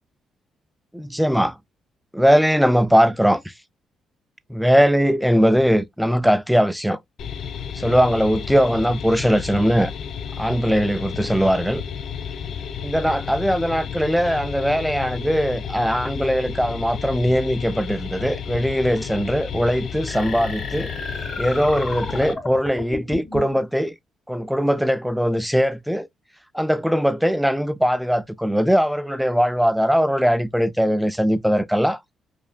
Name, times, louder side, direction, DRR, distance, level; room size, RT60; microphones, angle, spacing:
voice 1, 0.9-1.5 2.1-3.4 4.5-7.0 7.8-9.9 10.4-11.8 12.8-20.9 21.4-23.9 24.3-26.1 26.5-32.0, equal, ahead, 0.3 m, -20 dB
sound 1, 7.2-22.3, left 7 dB, 60° left, 0.4 m, -32 dB
sound 2, 20.1-23.6, left 2 dB, 30° left, 2.0 m, -32 dB
5.0 x 2.5 x 2.2 m
cardioid pair, 90°, 0 cm